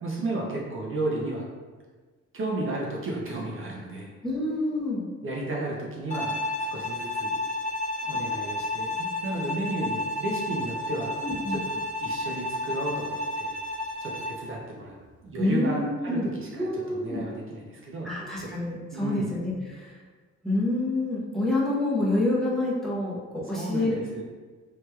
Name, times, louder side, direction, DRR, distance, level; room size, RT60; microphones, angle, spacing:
voice 1, 0.0-1.4 2.3-4.1 5.2-7.4 8.0-11.1 11.5-13.6 14.0-15.0 15.2-18.1 18.4-18.5 18.9-19.3 23.5-24.2, right 2 dB, 45° right, -3 dB, 0.6 m, -33 dB
voice 2, 4.2-5.1 11.2-11.6 15.4-16.3 16.5-17.2 18.0-20.0 20.4-23.9, left 2 dB, ahead, -6 dB, 0.8 m, -27 dB
Bowed string instrument, 6.1-14.5, left 2 dB, 25° left, 0.5 m, -31 dB
3.1 x 2.9 x 2.3 m, 1.4 s
cardioid pair, 90°, 30 cm